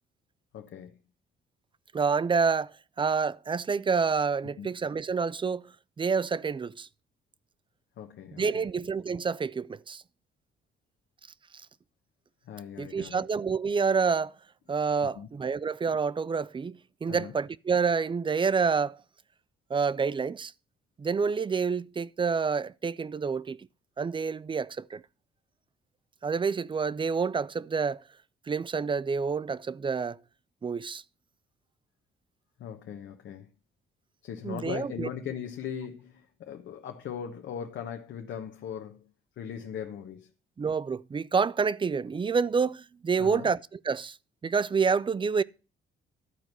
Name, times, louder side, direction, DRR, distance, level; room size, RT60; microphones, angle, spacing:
voice 1, 0.5-1.0 4.6-4.7 8.0-8.7 12.5-13.3 15.0-15.3 17.1-17.4 32.6-33.5 34.2-39.1 39.4-40.3 43.2-43.5, left 8 dB, 70° left, 1.1 m, -39 dB
voice 2, 1.9-5.7 6.0-6.9 8.4-10.0 12.8-14.3 14.7-19.0 19.7-20.5 21.0-23.6 24.0-25.0 26.2-28.0 28.5-30.2 30.6-31.0 34.4-35.1 40.6-43.6 43.8-44.2 44.4-45.4, right 5 dB, 25° right, 0.4 m, -28 dB
12.5 x 4.5 x 6.6 m
cardioid pair, 90°, 20 cm